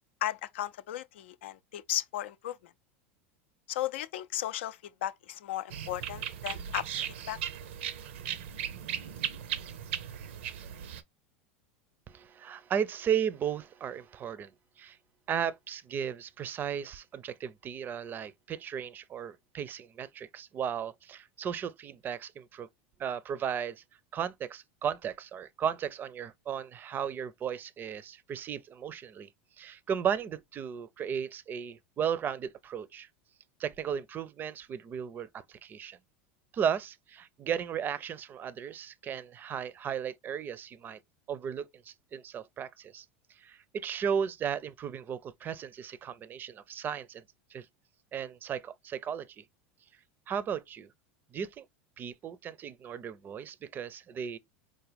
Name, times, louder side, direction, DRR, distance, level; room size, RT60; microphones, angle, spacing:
voice 1, 0.2-2.7 3.7-7.4, left 13 dB, 80° left, 0.4 m, -35 dB
sound 1, 5.7-11.0, right 9 dB, 80° right, 0.6 m, -37 dB
voice 2, 12.1-14.5 14.8-15.0 15.3-22.7 23.0-23.8 24.1-29.3 29.6-33.1 33.6-36.0 36.5-41.0 41.3-43.1 43.4-47.2 47.5-47.7 48.1-49.4 50.3-50.9 51.3-51.7 52.0-54.4, right 8 dB, 30° right, 0.5 m, -35 dB
4.8 x 2.2 x 3.3 m
hypercardioid pair, 105°, 6 cm